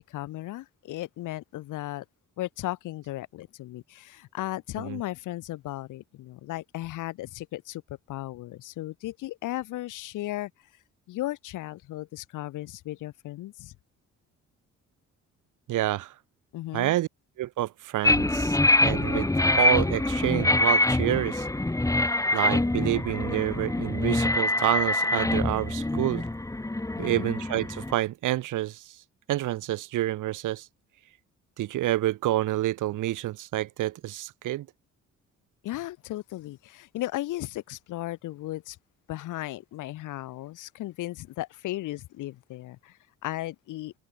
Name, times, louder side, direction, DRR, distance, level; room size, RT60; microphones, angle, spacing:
voice 1, 0.1-2.0 2.4-7.8 8.1-10.5 11.1-13.7 16.5-16.9 27.0-27.3 35.6-38.8 39.1-43.9, left 16 dB, 90° left, 4.3 m, -36 dB
voice 2, 15.7-16.1 16.7-17.1 17.4-19.3 19.6-21.5 22.3-26.2 27.0-28.9 29.3-30.7 31.6-34.7, right 14 dB, 85° right, 5.9 m, -28 dB
sound 1, 18.0-27.9, left 2 dB, 10° left, 2.4 m, -25 dB
open air
cardioid pair, 90°, 30 cm